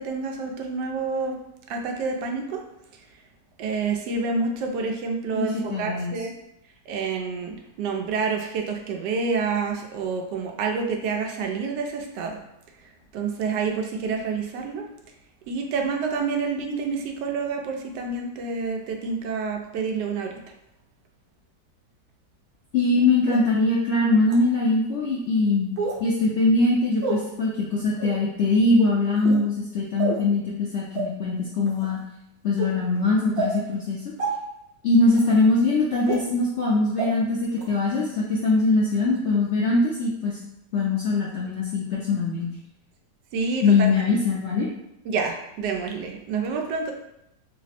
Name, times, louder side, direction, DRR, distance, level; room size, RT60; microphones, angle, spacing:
voice 1, 0.0-1.3 1.7-2.6 3.6-6.3 6.9-12.4 13.1-14.8 15.5-20.4 43.3-43.9 45.1-46.9, right 4 dB, 90° right, 2 dB, 1.2 m, -28 dB
voice 2, 5.3-6.2 22.7-25.7 26.0-32.0 32.4-34.0 34.8-40.4 40.7-42.5 43.6-44.7, left 3 dB, 75° left, -4 dB, 0.6 m, -22 dB
sound 1, 23.3-23.4 24.3-24.4 25.8-26.0 27.0-27.2 28.0-28.2 29.1-29.4 30.0-30.2 30.9-31.0 31.7-31.9 32.6-32.7 33.4-33.5 34.2-34.3 35.1-35.2 36.1-36.2 37.0-37.1 37.6-37.7, right 4 dB, 65° right, 1.2 m, -27 dB
3.4 x 2.0 x 4.1 m, 0.83 s
omnidirectional pair, 1.8 m